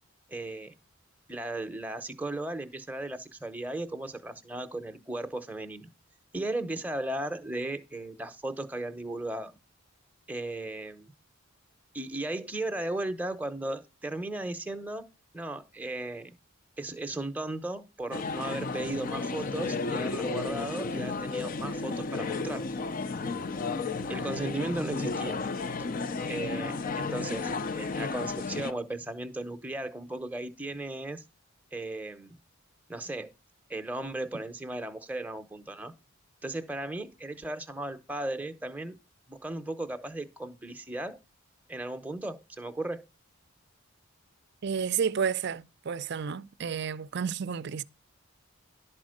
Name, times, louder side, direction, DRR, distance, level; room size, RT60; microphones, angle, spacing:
voice 1, 0.3-0.7 1.3-5.9 6.3-9.5 10.3-11.1 11.9-15.0 15.3-16.4 16.8-22.7 24.1-25.4 26.3-31.2 31.7-32.4 32.9-33.3 33.7-35.9 36.4-39.0 39.3-41.2 41.7-43.0, right 2 dB, 5° right, 0.7 m, -36 dB
sound 1, 18.1-28.7, left 4 dB, 40° left, 0.4 m, -33 dB
voice 2, 44.6-47.8, right 7 dB, 50° right, 0.4 m, -31 dB
11.5 x 4.3 x 6.3 m
head